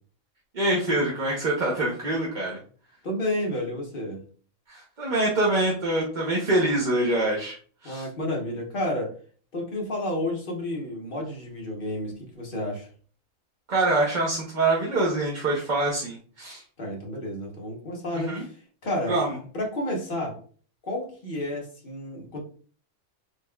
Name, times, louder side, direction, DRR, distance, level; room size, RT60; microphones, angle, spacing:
voice 1, 0.5-2.6 4.7-7.6 7.8-8.1 13.7-16.6 18.1-18.4 19.1-19.4, right 2 dB, 40° right, -3 dB, 0.8 m, -25 dB
voice 2, 3.0-4.2 7.8-9.1 9.5-12.9 16.8-18.5 18.8-19.2 19.5-20.4 20.8-22.4, left 1 dB, 45° left, -1 dB, 1.2 m, -31 dB
4.0 x 3.3 x 2.3 m, 0.43 s
omnidirectional pair, 1.4 m